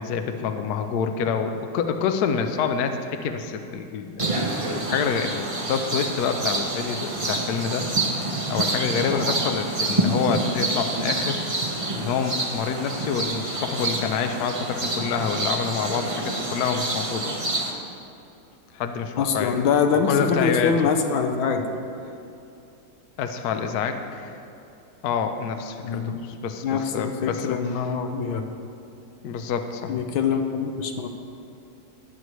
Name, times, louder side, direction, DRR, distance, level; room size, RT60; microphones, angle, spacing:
voice 1, 0.0-4.3 4.7-8.2 8.5-11.4 12.0-17.4 18.7-19.6 20.0-20.7 23.2-24.3 25.0-27.6 29.2-30.0, left 6 dB, 65° left, 6 dB, 1.0 m, -27 dB
sound 1, 4.2-17.7, right 2 dB, 30° right, 0.6 m, -27 dB
voice 2, 19.2-21.6 25.8-26.2 26.6-28.4 29.9-31.1, left 6 dB, 85° left, 6 dB, 1.5 m, -24 dB
20.5 x 8.1 x 3.1 m, 2.7 s
omnidirectional pair, 2.2 m